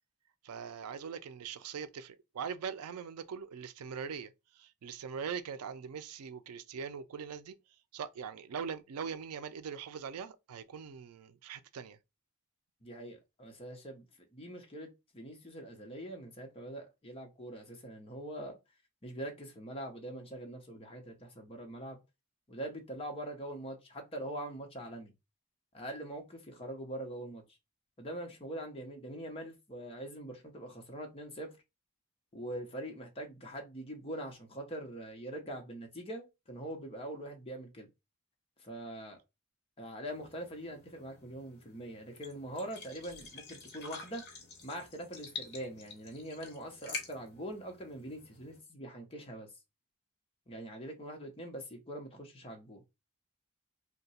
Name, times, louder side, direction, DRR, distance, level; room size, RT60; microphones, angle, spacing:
voice 1, 0.4-7.5 7.9-12.0, right 6 dB, 85° right, 0.4 m, -42 dB
voice 2, 12.8-14.1 14.3-18.6 19.0-22.0 22.5-25.1 25.7-27.4 28.0-31.5 32.3-37.9 38.6-39.2 39.8-44.2 44.6-49.5 50.5-52.8, right 1 dB, 25° left, 0.7 m, -43 dB
sound 1, 40.1-48.6, left 4 dB, 50° left, 1.0 m, -48 dB
2.8 x 2.2 x 4.1 m
head